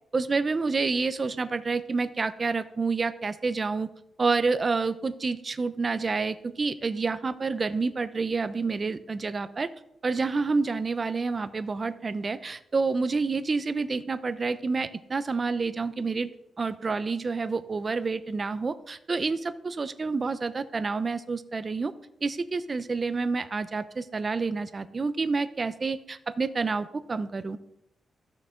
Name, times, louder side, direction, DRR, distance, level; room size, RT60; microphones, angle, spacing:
voice 1, 0.1-3.9 4.2-9.7 10.0-16.3 16.6-21.9 22.2-27.6, right 4 dB, 35° right, 12 dB, 0.6 m, -28 dB
13.0 x 6.0 x 3.7 m, 0.80 s
cardioid pair, 110°, 0 cm